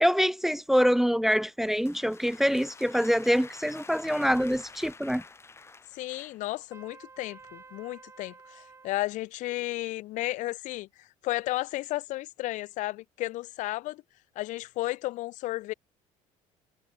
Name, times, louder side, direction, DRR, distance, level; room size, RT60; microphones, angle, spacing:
voice 1, 0.0-5.2, equal, ahead, 0.6 m, -25 dB
sound 1, 1.4-6.5, left 4 dB, 20° left, 6.6 m, -49 dB
voice 2, 5.9-14.0 14.4-15.7, left 17 dB, 70° left, 0.8 m, -33 dB
Trumpet, 6.7-9.0, right 4 dB, 20° right, 4.3 m, -51 dB
cardioid pair, 140°, 13 cm